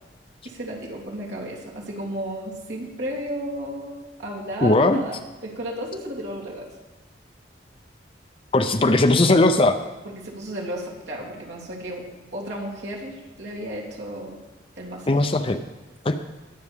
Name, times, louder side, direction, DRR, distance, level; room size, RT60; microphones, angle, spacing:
voice 1, 0.4-6.7 8.8-9.0 10.0-12.1 12.3-14.4 14.8-15.1, equal, 75° right, -4 dB, 3.2 m, -33 dB
voice 2, 4.6-5.0 8.5-9.8 15.1-15.6 16.0-16.1, left 2 dB, 30° left, 7 dB, 0.5 m, -18 dB
21.5 x 8.4 x 3.6 m, 1.1 s
head